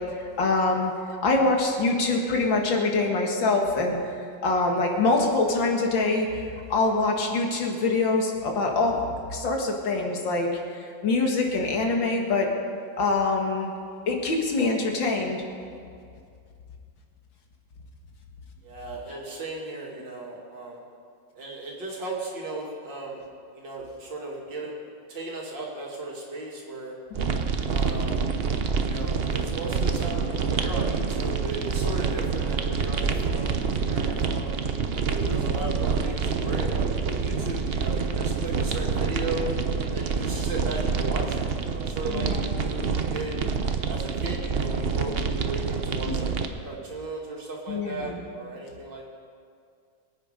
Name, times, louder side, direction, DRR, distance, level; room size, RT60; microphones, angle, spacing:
voice 1, 0.4-0.9 1.2-4.0 4.4-6.4 6.7-9.0 9.3-12.5 13.0-13.7 14.1-15.4 19.1-19.2 27.1-27.4 34.1-34.2 42.1-42.5 46.1-46.2 47.7-48.2, left 3 dB, 85° left, 1 dB, 2.5 m, -24 dB
voice 2, 18.6-20.8 21.3-23.2 23.5-24.8 25.1-26.9 27.7-28.2 28.8-34.5 35.0-39.5 39.9-43.4 43.9-46.4 46.6-49.0, right 2 dB, 75° right, -3 dB, 3.2 m, -36 dB
sound 1, 27.1-46.5, right 5 dB, 55° right, 0.7 m, -27 dB
23.0 x 9.0 x 5.1 m, 2.3 s
omnidirectional pair, 2.0 m